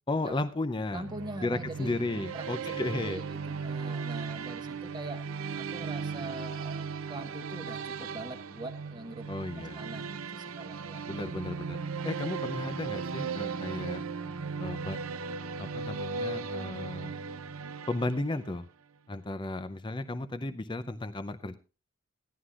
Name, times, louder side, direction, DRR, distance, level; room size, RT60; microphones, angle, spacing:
voice 1, 0.1-1.0 1.4-3.2 9.3-9.8 11.1-11.8 12.0-14.0 14.6-15.0 15.6-17.1 17.9-18.7 19.1-21.5, left 2 dB, 20° left, 10 dB, 0.5 m, -34 dB
voice 2, 0.9-2.0 2.3-3.2 3.6-5.2 5.6-9.3 9.5-11.0, right 1 dB, 20° right, 5 dB, 1.2 m, -42 dB
sound 1, 0.9-18.6, right 5 dB, 80° right, 0.6 m, -37 dB
16.0 x 11.5 x 2.5 m, 0.33 s
head